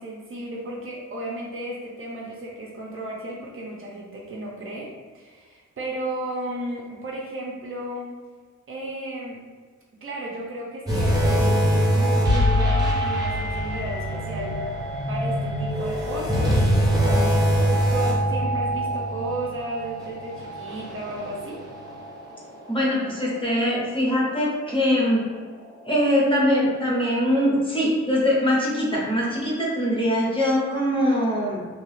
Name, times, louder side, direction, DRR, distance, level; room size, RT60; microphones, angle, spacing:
voice 1, 0.0-8.2 8.7-9.4 10.0-14.6 15.1-17.6 17.9-21.6, right 1 dB, 45° right, -3 dB, 0.5 m, -34 dB
sound 1, 10.9-22.3 22.7-22.9 23.5-23.6, equal, 15° right, 0.7 m, -23 dB
voice 2, 22.7-25.2 25.8-31.7, equal, 15° left, -5 dB, 0.7 m, -22 dB
2.8 x 2.3 x 3.1 m, 1.5 s
wide cardioid pair, 145°, 30 cm